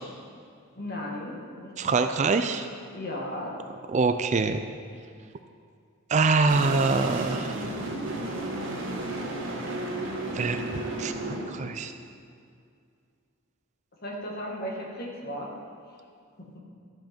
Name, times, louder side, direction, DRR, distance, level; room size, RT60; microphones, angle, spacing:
voice 1, 0.8-2.4 2.9-3.6 14.0-15.5, left 1 dB, 45° left, -2 dB, 1.8 m, -36 dB
voice 2, 1.8-2.7 3.9-4.6 6.1-7.6 10.3-11.9, right 4 dB, 35° right, 8 dB, 0.4 m, -25 dB
sound 1, 6.5-11.5, right 1 dB, 60° right, 1.5 m, -33 dB
12.5 x 7.8 x 4.4 m, 2.3 s
head